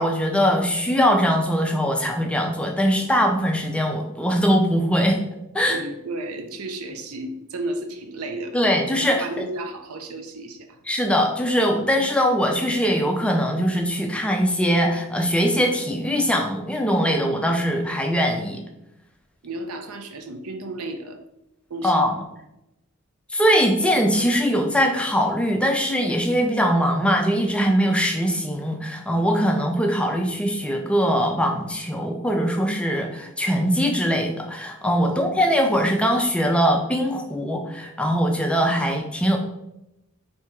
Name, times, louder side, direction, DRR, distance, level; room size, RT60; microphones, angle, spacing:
voice 1, 0.0-5.2 5.5-5.8 8.5-9.2 10.9-18.6 21.8-22.1 23.3-39.4, equal, 5° left, 2 dB, 0.4 m, -21 dB
voice 2, 5.7-8.6 9.1-10.8 19.4-21.2 21.7-22.1 35.0-35.5 38.7-38.9, right 2 dB, 75° right, 7 dB, 0.5 m, -33 dB
3.5 x 2.8 x 4.3 m, 0.87 s
head